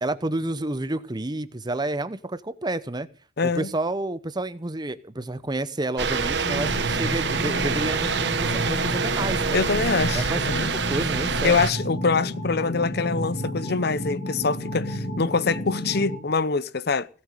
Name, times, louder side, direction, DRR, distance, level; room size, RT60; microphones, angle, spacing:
voice 1, 0.0-3.1 3.4-9.6 10.1-11.6, right 2 dB, 25° right, 0.8 m, -30 dB
voice 2, 3.4-3.7 9.5-10.7 11.4-17.1, left 4 dB, 55° left, 0.8 m, -24 dB
sound 1, 6.0-11.7, right 5 dB, 65° right, 1.1 m, -26 dB
sound 2, 6.4-16.2, equal, 75° left, 3.4 m, -31 dB
17.5 x 7.7 x 9.1 m
head